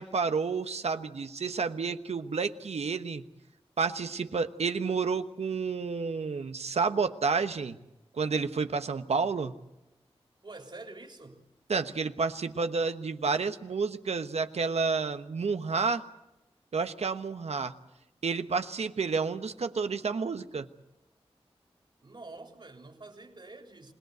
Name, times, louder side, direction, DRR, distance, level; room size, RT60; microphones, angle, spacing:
voice 1, 0.0-3.2 3.8-7.8 8.1-9.5 11.7-16.0 16.7-17.7 18.2-20.7, right 5 dB, 80° right, 1.2 m, -30 dB
voice 2, 10.4-11.4 22.0-23.9, right 2 dB, 45° right, 3.6 m, -47 dB
26.0 x 18.0 x 8.1 m
cardioid pair, 45°, 11 cm